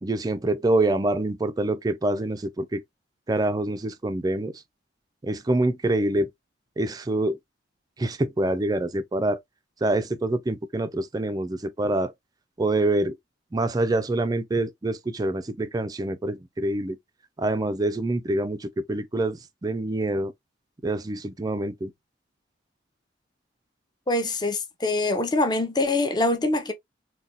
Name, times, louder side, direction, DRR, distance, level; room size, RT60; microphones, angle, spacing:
voice 1, 0.0-2.8 3.3-4.6 5.2-6.3 6.8-7.4 8.0-9.4 9.8-12.1 12.6-13.1 13.5-17.0 17.4-20.3 20.8-21.9, right 2 dB, 20° right, 0.4 m, -26 dB
voice 2, 24.1-26.7, left 2 dB, 20° left, 0.6 m, -24 dB
3.9 x 2.3 x 2.6 m
head